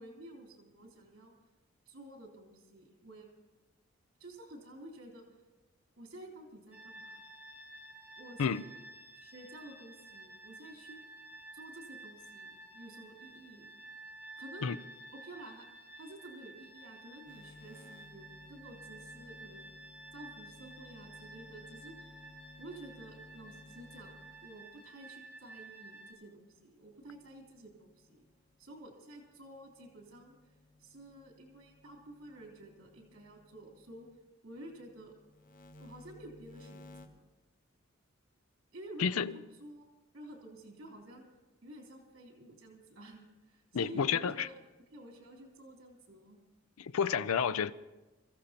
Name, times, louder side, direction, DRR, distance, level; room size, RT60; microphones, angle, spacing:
voice 1, 0.0-1.3 1.8-3.3 4.2-5.2 6.0-7.2 8.2-8.7 9.2-11.0 11.5-13.7 14.4-14.7 15.2-15.7 16.0-19.7 20.1-22.1 22.6-24.1 24.4-28.3 28.6-30.5 30.8-34.1 34.4-35.1 35.8-37.2 38.7-39.2 39.6-39.9 40.1-41.2 41.6-44.6 44.9-46.4, right 1 dB, 65° right, 3.4 m, -51 dB
sound 1, 6.7-26.1, right 2 dB, 5° right, 1.8 m, -52 dB
sound 2, 17.3-24.7 26.7-28.9 29.4-34.1 34.6-37.1, left 2 dB, 40° left, 1.0 m, -58 dB
voice 2, 39.0-39.3 43.7-44.5 46.8-47.7, left 6 dB, 85° left, 0.5 m, -30 dB
26.0 x 14.5 x 2.9 m
head